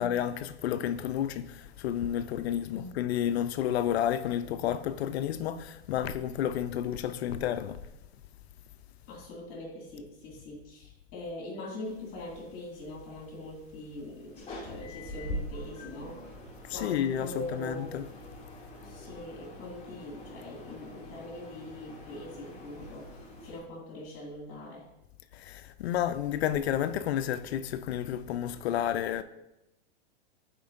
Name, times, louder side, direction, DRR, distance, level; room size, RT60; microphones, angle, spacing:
voice 1, 0.0-7.8 16.7-18.1 25.3-29.2, left 10 dB, 70° left, 0.5 m, -31 dB
voice 2, 9.1-16.2 16.7-18.0 18.8-24.9, left 1 dB, 40° left, 2.1 m, -42 dB
sound 1, 11.8-23.6, left 1 dB, 20° left, 1.9 m, -45 dB
10.0 x 4.4 x 2.5 m
hypercardioid pair, 115°, 33 cm